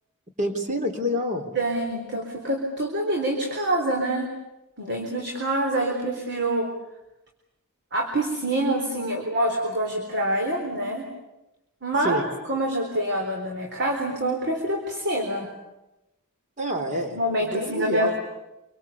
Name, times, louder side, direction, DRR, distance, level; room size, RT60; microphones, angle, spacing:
voice 1, 0.4-1.5 12.0-12.2 16.6-18.2, equal, 35° right, 5 dB, 3.7 m, -27 dB
voice 2, 1.5-4.3 4.8-6.7 7.9-11.0 11.8-15.5 17.1-18.2, right 1 dB, 50° right, 2 dB, 4.0 m, -26 dB
27.0 x 24.5 x 8.5 m, 0.95 s
head